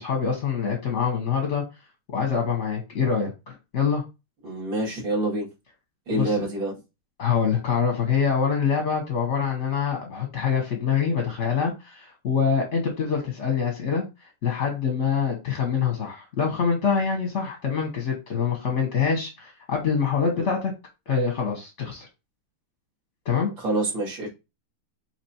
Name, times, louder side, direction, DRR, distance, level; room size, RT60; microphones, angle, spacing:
voice 1, 0.0-1.6 2.1-4.0 6.1-6.4 7.2-14.0 14.4-20.7 21.1-22.1 23.2-23.5, left 6 dB, 50° left, 0.9 m, -25 dB
voice 2, 4.4-5.5 6.1-6.7 20.4-20.5 23.6-24.3, right 2 dB, 60° right, 3.0 m, -27 dB
5.7 x 3.1 x 2.9 m
omnidirectional pair, 2.4 m